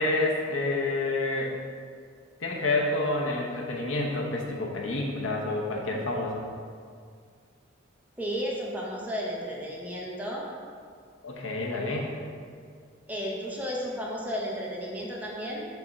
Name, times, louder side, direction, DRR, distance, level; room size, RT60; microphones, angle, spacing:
voice 1, 0.0-1.5 2.4-6.4 11.2-12.2, left 2 dB, 80° left, -1 dB, 0.9 m, -28 dB
voice 2, 8.2-10.5 13.1-15.7, equal, 10° right, -4 dB, 0.9 m, -33 dB
5.6 x 3.6 x 5.4 m, 2.1 s
head